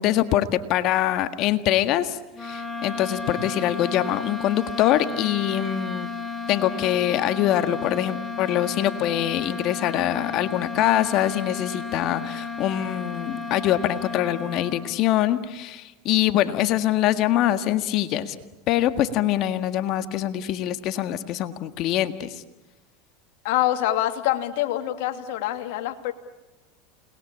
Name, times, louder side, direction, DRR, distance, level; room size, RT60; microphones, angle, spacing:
voice 1, 0.0-6.1 6.5-18.4 18.7-22.4, left 12 dB, 50° left, 10 dB, 1.7 m, -24 dB
sound 1, 2.3-15.0, left 4 dB, 5° right, 3.7 m, -33 dB
voice 2, 23.4-26.1, left 13 dB, 70° left, 6 dB, 2.6 m, -25 dB
29.5 x 21.0 x 8.7 m, 1.0 s
supercardioid pair, 110°, 0 cm